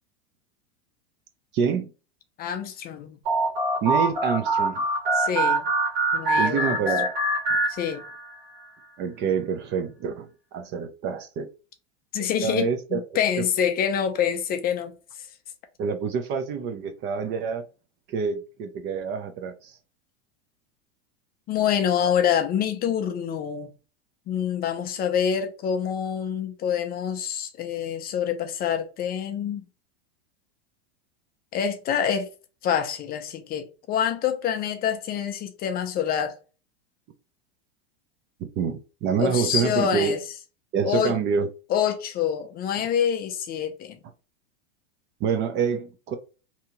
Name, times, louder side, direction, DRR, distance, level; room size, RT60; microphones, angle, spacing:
voice 1, 1.5-1.9 3.8-4.8 6.4-7.1 9.0-11.5 12.2-13.0 15.8-17.6 18.1-19.8 38.6-40.1 40.7-41.5 42.8-42.9 45.2-46.2, right 6 dB, 35° right, 0.4 m, -27 dB
voice 2, 2.4-3.2 5.1-5.6 6.1-6.8 7.7-8.0 12.1-15.3 21.5-23.7 24.3-29.6 31.5-32.3 32.6-36.4 39.2-40.2 40.8-41.2 41.7-44.0, left 8 dB, 30° left, 0.4 m, -26 dB
sound 1, 3.3-8.4, right 2 dB, 65° right, 1.5 m, -24 dB
2.8 x 2.3 x 2.9 m
hypercardioid pair, 115°, 33 cm